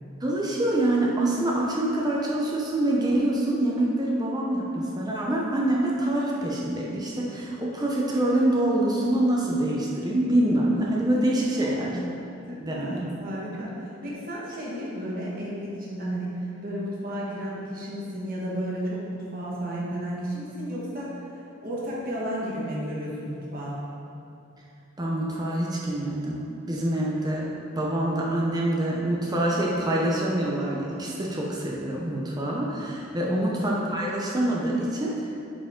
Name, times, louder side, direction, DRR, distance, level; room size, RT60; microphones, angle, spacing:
voice 1, 0.2-11.9 12.6-13.0 25.0-27.4 27.8-35.3, right 1 dB, 20° right, -4 dB, 0.7 m, -25 dB
voice 2, 11.5-11.9 12.5-21.2 21.6-23.8 33.2-33.5, equal, 40° right, -6 dB, 1.5 m, -33 dB
8.7 x 5.0 x 3.7 m, 2.6 s
head